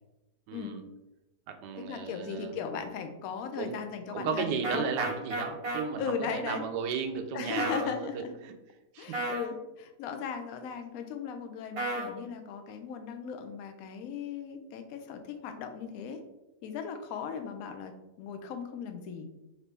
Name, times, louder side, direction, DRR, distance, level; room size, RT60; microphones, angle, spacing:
voice 1, 0.5-0.8 1.5-2.8 3.6-3.7 4.1-8.5 8.9-9.2, right 6 dB, 85° right, 5 dB, 1.2 m, -35 dB
voice 2, 1.8-4.9 6.0-6.7 7.3-8.3 9.0-16.2 16.6-17.9 18.2-19.3, left 6 dB, 70° left, 7 dB, 0.9 m, -37 dB
sound 1, 4.6-5.8 7.6-7.9 9.1-9.5 11.8-12.1, right 2 dB, 45° right, 0.9 m, -32 dB
4.4 x 2.6 x 3.2 m, 0.98 s
omnidirectional pair, 1.8 m